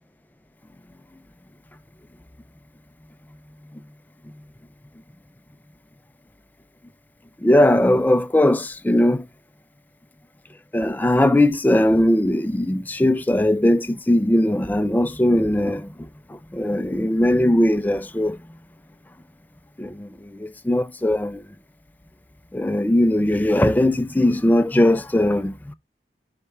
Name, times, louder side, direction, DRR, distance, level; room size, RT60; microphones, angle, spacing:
voice 1, 7.4-9.3 10.7-15.9 16.3-18.4 19.8-21.4 22.5-25.7, left 1 dB, 10° left, 0.3 m, -19 dB
9.9 x 4.4 x 2.2 m
head